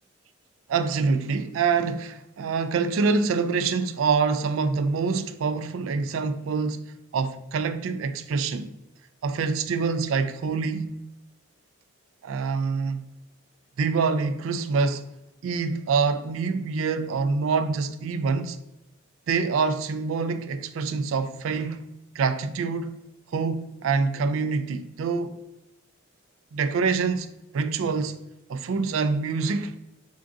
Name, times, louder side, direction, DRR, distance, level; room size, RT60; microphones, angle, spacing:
voice 1, 0.7-8.7 9.2-11.0 12.2-13.0 13.8-15.0 15.4-18.6 19.3-21.9 22.2-23.0 23.3-25.4 26.5-27.3 27.5-28.2 28.5-29.7, right 4 dB, 75° right, 0.3 m, -26 dB
3.5 x 2.5 x 3.7 m
head